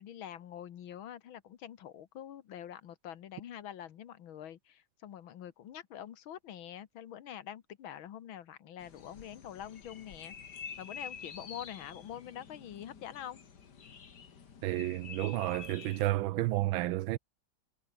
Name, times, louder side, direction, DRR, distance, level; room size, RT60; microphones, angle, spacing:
voice 1, 0.0-10.4 10.8-13.4, left 10 dB, 70° left, 2.0 m, -45 dB
sound 1, 8.8-16.0, left 6 dB, 50° left, 2.4 m, -48 dB
voice 2, 14.6-17.2, right 16 dB, 75° right, 1.3 m, -31 dB
omnidirectional pair, 2.4 m